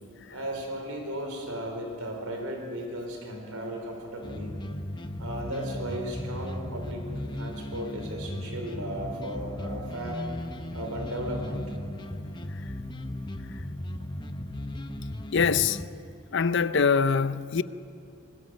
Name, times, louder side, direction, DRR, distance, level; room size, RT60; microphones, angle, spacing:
voice 1, 0.3-4.6 5.2-10.2 10.7-11.7, right 1 dB, 90° right, 4.2 m, -36 dB
sound 1, 4.2-15.9, left 1 dB, 20° left, 0.8 m, -36 dB
voice 2, 15.3-15.8 16.3-17.6, left 5 dB, 55° left, 0.5 m, -23 dB
24.0 x 21.0 x 6.4 m
head